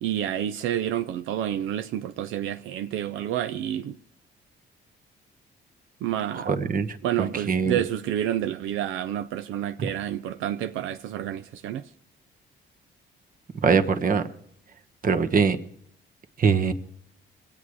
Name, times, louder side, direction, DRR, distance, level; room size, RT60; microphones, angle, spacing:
voice 1, 0.0-4.0 6.0-6.5 7.0-11.9, right 11 dB, 85° right, 0.5 m, -29 dB
voice 2, 6.3-7.8 13.6-14.3 15.0-15.6 16.4-16.7, right 5 dB, 45° right, 1.2 m, -23 dB
23.0 x 8.7 x 4.7 m
cardioid pair, 90°, 20 cm